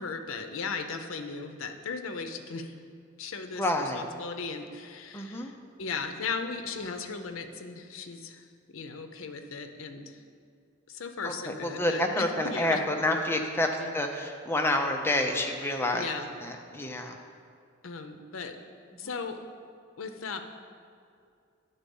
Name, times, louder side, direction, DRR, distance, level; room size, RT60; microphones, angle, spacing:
voice 1, 0.0-2.7 3.2-10.2 10.9-12.8 13.8-13.9 15.9-16.3 17.8-18.6 19.0-19.4 20.0-20.4, left 4 dB, 80° left, 7 dB, 0.6 m, -37 dB
voice 2, 3.6-4.0 5.1-5.5 11.2-17.2 18.9-19.0, left 1 dB, 10° left, 3 dB, 0.5 m, -29 dB
10.5 x 4.1 x 5.3 m, 2.3 s
head